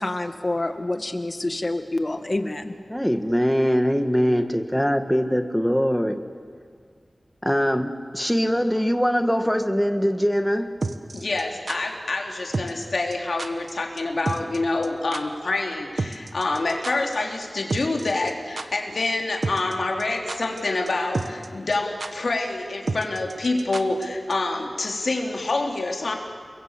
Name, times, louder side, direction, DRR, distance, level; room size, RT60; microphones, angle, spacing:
voice 1, 0.0-2.7 3.3-3.4, left 2 dB, 40° left, 7 dB, 1.9 m, -27 dB
voice 2, 2.9-6.2 7.4-10.7, equal, ahead, 7 dB, 1.6 m, -22 dB
sound 1, 10.8-11.8 12.5-12.9 13.1-13.2 13.4-13.7 14.0-14.1 14.3-14.6 14.8-14.9 15.1-15.2 16.0-17.2 17.4-17.5 17.7-18.3 18.6-18.7 19.4-19.7 20.0-20.6 20.9-21.0 21.1-21.5 21.7-21.8 22.0-22.1 22.9-24.0 24.3-24.4, right 3 dB, 70° right, 1.3 m, -29 dB
voice 3, 11.1-26.2, left 2 dB, 80° left, 1 dB, 3.4 m, -27 dB
29.5 x 22.0 x 8.2 m, 2.1 s
wide cardioid pair, 75°, 0 cm